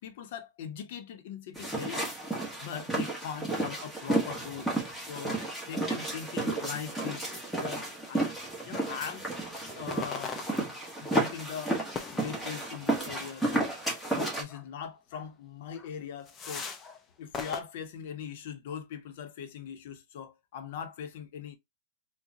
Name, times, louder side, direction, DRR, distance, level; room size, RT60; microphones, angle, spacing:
voice 1, 0.0-2.1 2.6-4.7 5.1-7.3 7.5-8.3 8.6-9.3 9.7-11.8 12.1-13.8 14.1-16.7 17.2-21.6, left 8 dB, 60° left, 0.8 m, -40 dB
sound 1, 1.6-14.4, right 2 dB, ahead, 1.2 m, -32 dB
sound 2, 9.3-9.5 9.9-11.1 11.9-12.8 14.0-14.2 14.5-14.7 15.1-15.3 15.7-15.9 16.3-17.0 17.3-17.6, left 5 dB, 20° left, 0.6 m, -40 dB
3.7 x 2.2 x 2.8 m
hypercardioid pair, 135°, 0 cm